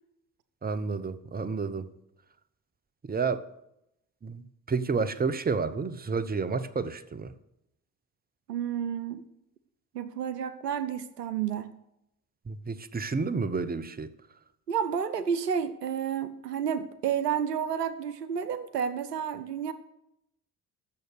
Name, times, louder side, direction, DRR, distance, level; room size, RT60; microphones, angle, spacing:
voice 1, 0.6-1.9 3.0-3.4 4.2-4.4 4.7-7.3 12.5-14.1, right 4 dB, 20° right, 15 dB, 0.9 m, -30 dB
voice 2, 8.5-9.2 9.9-11.7 14.7-19.7, right 8 dB, 85° right, 14 dB, 0.6 m, -30 dB
15.0 x 6.6 x 6.6 m, 0.82 s
figure-of-eight pair, 45°, 47 cm